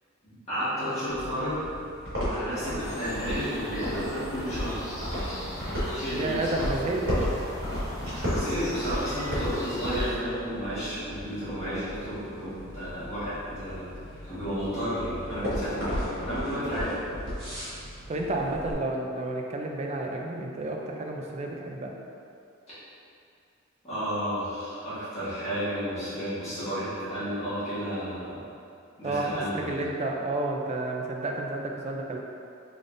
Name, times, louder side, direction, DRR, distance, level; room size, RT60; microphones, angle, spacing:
voice 1, 0.2-1.5 2.2-4.8 5.1-5.6 5.9-6.6 8.3-13.9 14.2-16.9 23.8-28.4 29.0-29.8, equal, 30° left, -15 dB, 1.5 m, -32 dB
sound 1, 1.1-18.7, equal, 65° right, 1.5 m, -34 dB
sound 2, 2.8-10.1, equal, 15° left, 0.6 m, -39 dB
voice 2, 6.1-7.3 18.1-21.9 29.0-32.2, right 2 dB, 30° right, 1 dB, 0.3 m, -31 dB
3.8 x 3.3 x 2.5 m, 2.5 s
head